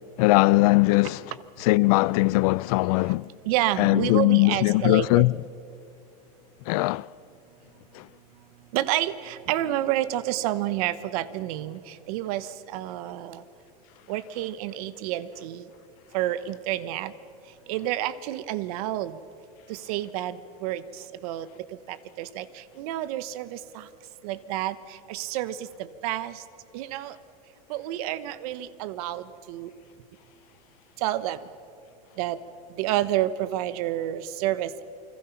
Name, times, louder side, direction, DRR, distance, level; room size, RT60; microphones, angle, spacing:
voice 1, 0.2-1.2 1.6-3.2 3.8-5.3 6.7-7.0, left 22 dB, 70° left, 0.5 m, -20 dB
voice 2, 3.5-5.3 8.7-13.4 14.1-15.6 16.1-17.1 17.7-19.2 19.7-20.8 21.2-21.5 21.9-23.8 24.2-24.8 25.1-25.7 26.0-26.4 26.7-27.2 27.7-29.7 31.0-31.4 32.2-32.4 32.8-34.8, right 13 dB, 70° right, 1.0 m, -29 dB
28.5 x 21.5 x 5.8 m
supercardioid pair, 135°, 19 cm